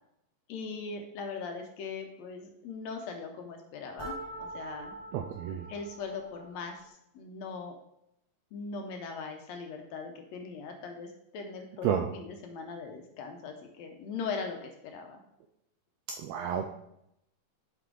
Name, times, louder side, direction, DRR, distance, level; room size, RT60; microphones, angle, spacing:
voice 1, 0.5-5.0 5.7-7.8 8.5-15.2, left 4 dB, 75° left, 4 dB, 1.8 m, -40 dB
sound 1, 4.0-6.9, right 2 dB, 55° right, 2.9 m, -44 dB
voice 2, 5.1-5.7 11.8-12.1 16.2-16.7, right 9 dB, 80° right, 4 dB, 1.5 m, -30 dB
8.1 x 4.9 x 3.8 m, 0.79 s
omnidirectional pair, 3.5 m